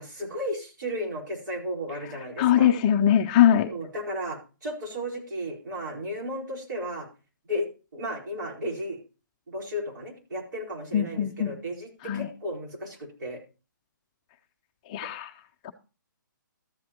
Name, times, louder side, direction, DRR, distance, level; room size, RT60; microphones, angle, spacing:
voice 1, 0.0-2.7 3.7-7.1 7.5-7.7 7.9-9.0 9.5-13.4 15.0-15.1, equal, 65° right, -1 dB, 4.3 m, -34 dB
voice 2, 2.4-3.7 10.9-11.5 12.0-12.3 14.9-15.3 15.6-15.7, left 10 dB, 20° left, 7 dB, 0.4 m, -21 dB
13.5 x 7.8 x 2.9 m, 0.32 s
hypercardioid pair, 160°, 11 cm